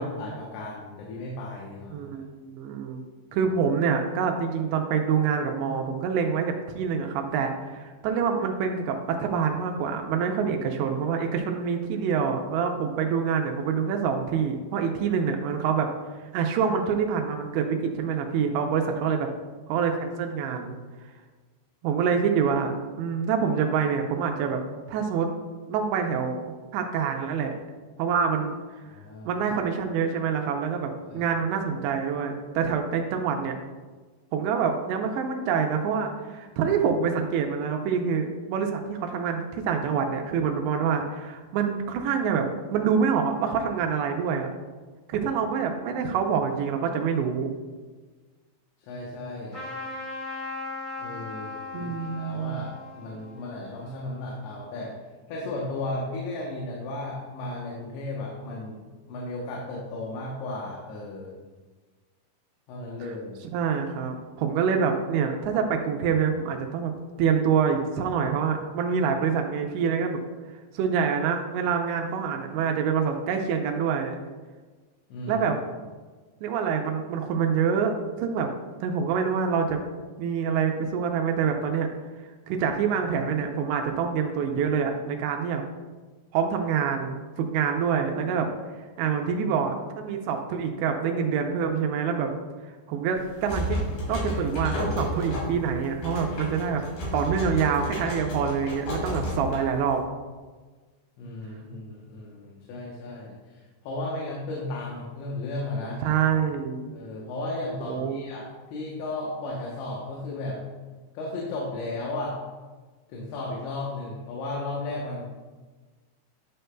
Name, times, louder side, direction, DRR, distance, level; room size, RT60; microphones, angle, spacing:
voice 1, 0.0-2.2 28.9-29.3 31.1-31.3 48.9-49.6 51.0-54.9 55.3-61.3 62.7-63.4 75.1-75.5 101.2-106.0 106.9-108.5 108.7-110.6 111.1-112.3 113.1-115.2, left 2 dB, 85° left, -3 dB, 3.3 m, -35 dB
voice 2, 1.9-3.0 3.3-15.9 16.3-19.3 19.7-20.8 21.8-24.6 24.9-25.3 25.7-26.4 26.7-27.5 28.0-28.6 29.3-33.5 34.3-42.5 42.7-44.5 45.1-47.5 51.7-52.7 63.0-63.1 63.5-66.9 67.2-70.2 70.7-74.2 75.3-75.6 76.4-78.5 78.8-79.8 80.2-81.9 82.5-85.6 86.3-88.5 89.0-92.3 92.9-93.8 94.1-96.8 97.1-100.0 106.0-106.8 107.8-108.3, right 6 dB, 85° right, 4 dB, 2.8 m, -26 dB
Trumpet, 49.5-54.6, left 3 dB, 30° left, 1.5 m, -38 dB
sound 1, 93.1-100.0, left 1 dB, 60° left, 4.0 m, -32 dB
11.0 x 6.5 x 2.2 m, 1.4 s
omnidirectional pair, 5.1 m